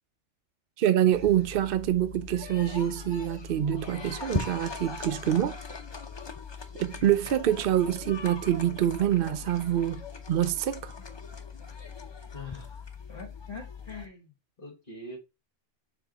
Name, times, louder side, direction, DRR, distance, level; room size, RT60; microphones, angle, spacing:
voice 1, 0.8-5.6 6.8-10.9, right 11 dB, 60° right, 0.6 m, -26 dB
sound 1, 1.1-14.1, left 5 dB, 25° left, 0.7 m, -40 dB
voice 2, 12.3-14.3 14.6-15.2, left 3 dB, 45° left, 1.7 m, -43 dB
7.1 x 3.6 x 4.0 m
omnidirectional pair, 1.2 m